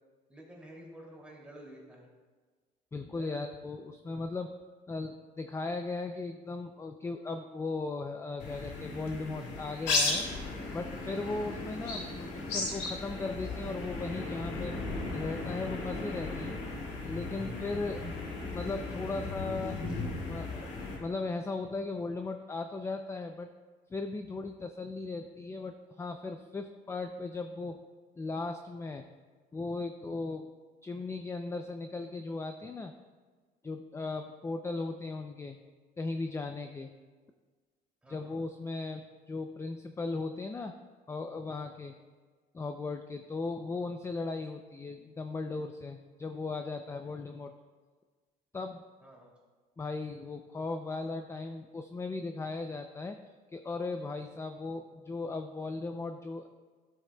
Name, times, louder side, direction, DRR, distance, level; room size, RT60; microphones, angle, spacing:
voice 1, 0.3-2.1 3.2-3.4 38.0-38.3 49.0-49.3, right 1 dB, 5° right, -3 dB, 2.5 m, -50 dB
voice 2, 2.9-4.5 4.9-10.3 10.7-14.7 15.1-16.6 17.0-18.1 18.5-19.8 20.3-20.7 21.0-23.5 23.9-27.8 28.2-29.1 29.5-30.5 30.8-32.9 33.6-35.6 36.0-36.9 38.1-40.7 41.1-41.9 42.5-47.5 48.5-48.8 49.8-53.2 53.5-56.5, left 3 dB, 15° left, 7 dB, 0.4 m, -37 dB
sound 1, 8.4-21.0, left 3 dB, 85° left, 2.3 m, -36 dB
12.5 x 7.6 x 2.2 m, 1.4 s
cardioid pair, 110°, 17 cm